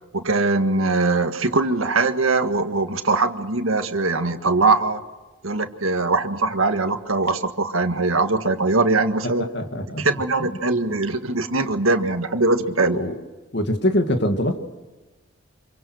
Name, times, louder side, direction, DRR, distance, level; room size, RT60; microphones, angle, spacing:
voice 1, 0.1-5.0 5.4-9.5 10.0-13.0, right 3 dB, 90° right, 7 dB, 1.7 m, -21 dB
voice 2, 9.4-10.1 10.4-10.6 12.9-13.1 13.5-14.6, left 1 dB, 55° left, 5 dB, 2.3 m, -23 dB
27.0 x 23.5 x 6.5 m, 1.2 s
head